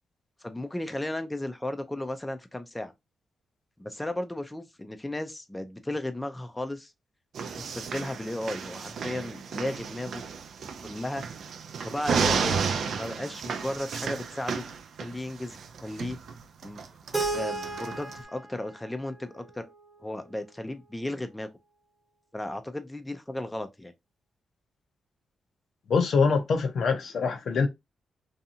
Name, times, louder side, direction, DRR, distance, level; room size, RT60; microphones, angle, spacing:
voice 1, 0.4-2.9 3.8-6.9 7.6-10.2 10.8-11.2 11.8-14.6 15.0-16.2 16.6-16.8 17.3-19.6 20.0-21.5 22.3-23.9, left 1 dB, 10° left, 0.4 m, -35 dB
sound 1, 7.3-18.2, right 6 dB, 70° right, 0.4 m, -33 dB
Keyboard (musical), 17.1-20.1, right 3 dB, 15° right, 1.0 m, -34 dB
voice 2, 25.9-27.7, left 5 dB, 70° left, 0.6 m, -24 dB
2.7 x 2.3 x 2.7 m
cardioid pair, 75°, 0 cm